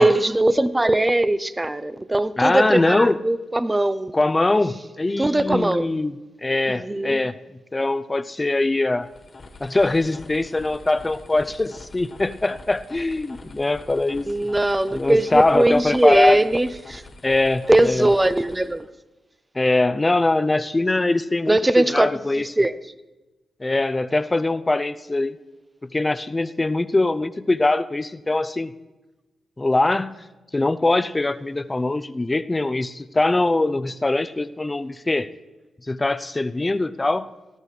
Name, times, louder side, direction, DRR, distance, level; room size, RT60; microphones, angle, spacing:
voice 1, 0.0-4.1 5.2-5.8 6.7-7.2 14.3-17.0 17.7-18.9 21.5-22.1 22.6-22.7, right 1 dB, 20° right, 14 dB, 0.7 m, -20 dB
voice 2, 2.4-3.2 4.1-6.2 6.4-7.3 7.7-9.1 9.6-14.3 14.9-16.4 17.2-18.1 19.6-22.5 23.6-25.4 25.9-28.7 29.6-30.2 30.5-35.3 35.9-37.3, left 2 dB, 25° left, 15 dB, 0.6 m, -22 dB
sound 1, 9.0-18.9, left 2 dB, 45° left, 1.8 m, -44 dB
19.0 x 12.5 x 3.3 m, 1.1 s
cardioid pair, 55°, 0 cm